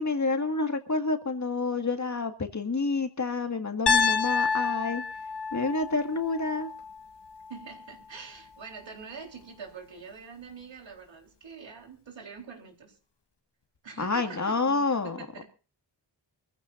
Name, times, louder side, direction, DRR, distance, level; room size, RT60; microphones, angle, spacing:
voice 1, 0.0-5.0 5.5-6.7 14.0-15.2, left 3 dB, 40° left, 6 dB, 1.9 m, -28 dB
Piano, 3.9-7.9, left 5 dB, 65° left, 1.6 m, -29 dB
voice 2, 7.5-13.0 13.8-15.5, right 5 dB, 85° right, 2 dB, 3.9 m, -45 dB
25.5 x 15.0 x 2.6 m, 0.36 s
wide cardioid pair, 90°, 44 cm